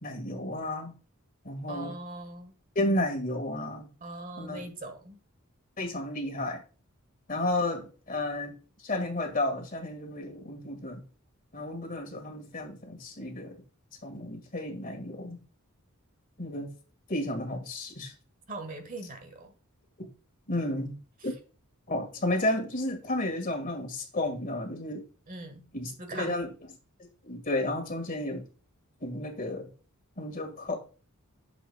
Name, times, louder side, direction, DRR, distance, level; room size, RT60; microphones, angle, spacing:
voice 1, 0.0-0.9 1.5-1.9 2.8-3.9 4.4-4.7 5.8-6.6 7.3-8.5 8.8-11.0 11.5-13.6 14.0-15.4 16.4-16.7 17.1-18.1 20.0-20.1 20.5-21.0 21.2-21.3 21.9-25.1 25.7-26.5 27.2-28.5 29.0-29.7 30.2-30.8, left 1 dB, 40° left, 1.9 m, -32 dB
voice 2, 1.7-2.5 4.0-5.2 18.5-19.5 21.2-21.3 25.3-25.7 26.0-26.5, right 2 dB, 40° right, 1.5 m, -41 dB
10.0 x 7.0 x 2.3 m
head